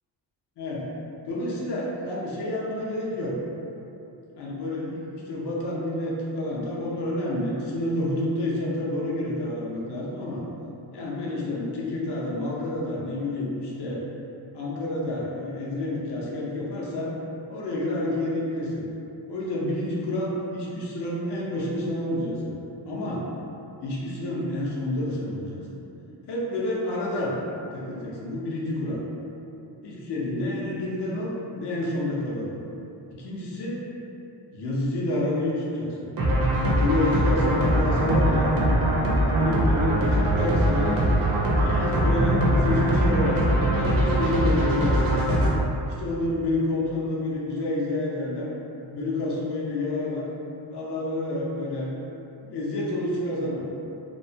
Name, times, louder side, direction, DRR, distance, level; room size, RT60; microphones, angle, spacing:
voice 1, 0.6-0.9 1.3-3.4 4.4-10.4 10.9-14.0 14.5-17.1 17.5-18.9 19.3-22.6 22.8-23.3 23.8-25.8 26.3-27.3 27.7-29.0 29.8-32.5 33.1-33.8 34.5-36.1 36.8-38.5 39.3-41.0 41.6-45.3 45.8-48.5 48.9-50.3 50.7-51.9 52.4-53.6, left 1 dB, 65° left, -4 dB, 0.6 m, -29 dB
sound 1, 36.2-45.5, right 1 dB, 50° right, 0.6 m, -22 dB
2.9 x 2.1 x 2.6 m, 2.8 s
cardioid pair, 120°, 44 cm